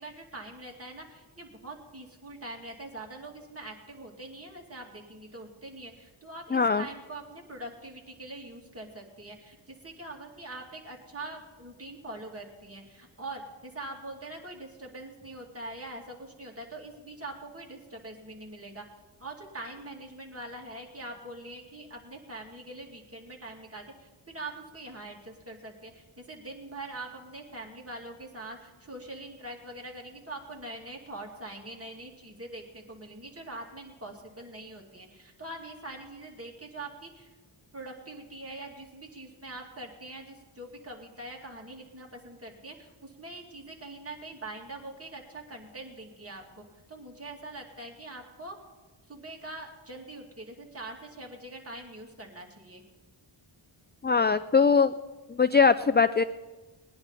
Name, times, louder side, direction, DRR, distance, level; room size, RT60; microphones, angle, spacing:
voice 1, 0.0-18.8 19.2-23.8 24.3-37.3 37.7-46.4 46.9-48.6 49.1-52.8, right 2 dB, 30° right, 0 dB, 2.5 m, -43 dB
voice 2, 6.5-6.9 54.0-54.9 55.4-56.2, left 5 dB, 25° left, 13 dB, 0.3 m, -21 dB
20.0 x 10.5 x 4.1 m, 1.2 s
wide cardioid pair, 75°, 49 cm